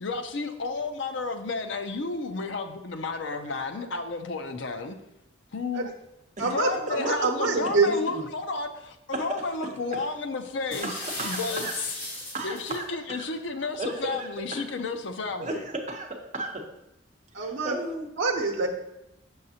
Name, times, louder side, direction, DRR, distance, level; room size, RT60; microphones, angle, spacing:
voice 1, 0.0-5.0 5.5-5.9 6.4-11.7 12.4-15.5, left 3 dB, 70° left, 7 dB, 0.6 m, -32 dB
voice 2, 6.4-8.2 17.3-17.8 18.2-18.7, right 3 dB, 80° right, 2 dB, 0.8 m, -26 dB
voice 3, 9.1-10.0 10.8-11.7 12.3-13.3 13.8-14.7 15.4-16.7 17.6-18.1, right 2 dB, 35° right, 2 dB, 0.9 m, -35 dB
sound 1, 10.7-12.8, left 1 dB, 50° left, 2.2 m, -36 dB
6.6 x 6.4 x 2.8 m, 0.87 s
head